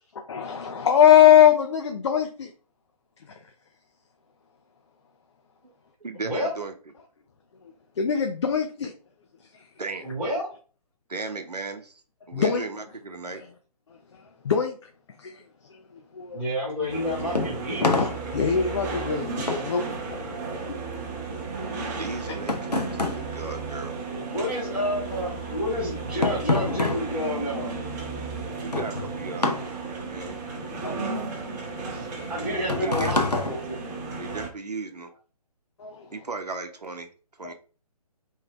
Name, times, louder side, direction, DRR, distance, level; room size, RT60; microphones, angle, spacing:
voice 1, 0.3-2.5 3.3-3.4 8.0-8.9 9.5-9.7 12.3-12.6 13.9-14.8 15.2-16.4 18.0-19.9 20.1-20.3 22.3-22.4 30.8-31.9 35.8-36.1 37.4-37.5, left 9 dB, 45° left, 0.5 m, -22 dB
voice 2, 6.0-6.7 9.8-10.2 11.1-12.0 12.3-13.5 19.2-19.3 22.0-24.0 28.6-30.4 32.7-33.1 34.2-35.1 36.1-37.1 37.4-37.5, right 3 dB, 85° right, 0.8 m, -36 dB
voice 3, 10.0-10.5 16.3-18.0 24.1-27.7 31.9-33.8, equal, 5° right, 1.7 m, -29 dB
sound 1, 16.8-24.5 24.8-34.4, left 3 dB, 90° left, 0.8 m, -30 dB
sound 2, 16.9-34.5, right 4 dB, 25° right, 1.1 m, -34 dB
3.3 x 3.1 x 3.4 m
figure-of-eight pair, 140°, 20 cm